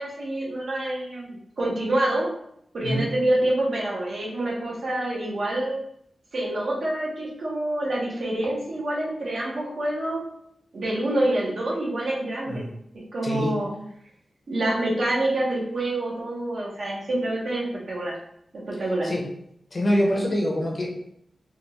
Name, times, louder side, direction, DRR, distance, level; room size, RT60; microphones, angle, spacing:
voice 1, 0.0-2.3 2.7-5.8 6.3-10.3 10.7-12.6 12.9-13.7 14.5-18.1 18.5-19.1, right 1 dB, 70° right, -4 dB, 1.0 m, -27 dB
voice 2, 13.2-13.6 19.0-19.2 19.7-20.9, equal, 40° left, -1 dB, 0.7 m, -24 dB
3.4 x 2.4 x 3.0 m, 0.73 s
wide cardioid pair, 130°, 0 cm